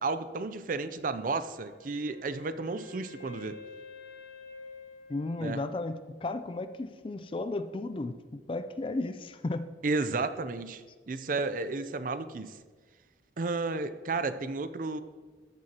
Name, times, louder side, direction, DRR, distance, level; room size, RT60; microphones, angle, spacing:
voice 1, 0.0-3.6 5.4-5.7 9.8-12.6 13.4-15.0, right 3 dB, 50° right, 12 dB, 0.5 m, -32 dB
Wind instrument woodwind instrument, 1.6-6.4, left 4 dB, 60° left, 1.2 m, -50 dB
voice 2, 5.1-8.2 8.5-9.7, left 2 dB, 30° left, 11 dB, 0.4 m, -34 dB
13.5 x 7.7 x 2.9 m, 1.4 s
head